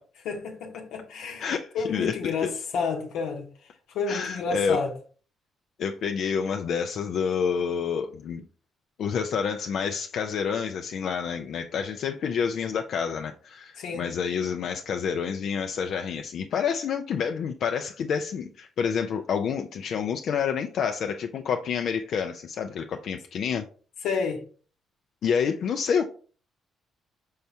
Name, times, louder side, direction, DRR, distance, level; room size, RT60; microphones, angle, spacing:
voice 1, 0.2-1.4 1.7-3.5 3.9-4.9 13.8-14.1 24.0-24.4, left 5 dB, 85° left, 0.8 m, -30 dB
voice 2, 1.4-2.5 4.1-4.8 5.8-8.4 9.0-23.7 25.2-26.0, left 6 dB, 65° left, 0.3 m, -28 dB
5.4 x 3.4 x 2.7 m
cardioid pair, 90°, 0 cm